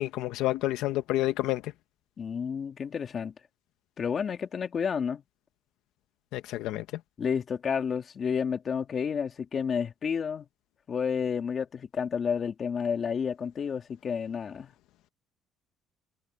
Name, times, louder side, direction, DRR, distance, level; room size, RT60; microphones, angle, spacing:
voice 1, 0.0-1.6 6.3-6.8, left 15 dB, 80° left, 0.8 m, -29 dB
voice 2, 2.2-3.3 4.0-5.2 7.2-10.5 10.9-14.7, left 6 dB, 35° left, 2.2 m, -30 dB
cardioid pair, 140°, 0 cm